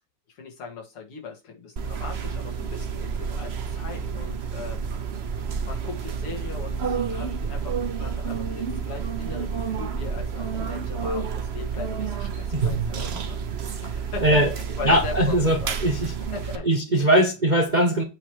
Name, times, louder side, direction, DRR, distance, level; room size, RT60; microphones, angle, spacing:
voice 1, 0.4-4.8 5.6-13.4 13.8-15.9 16.3-16.7 17.0-17.1, left 5 dB, 85° left, 3.1 m, -39 dB
sound 1, 1.8-16.6, right 6 dB, 65° right, 0.6 m, -30 dB
voice 2, 14.8-15.6 15.8-16.1 16.7-18.0, right 1 dB, 30° right, 0.9 m, -20 dB
8.5 x 3.3 x 6.2 m
omnidirectional pair, 2.4 m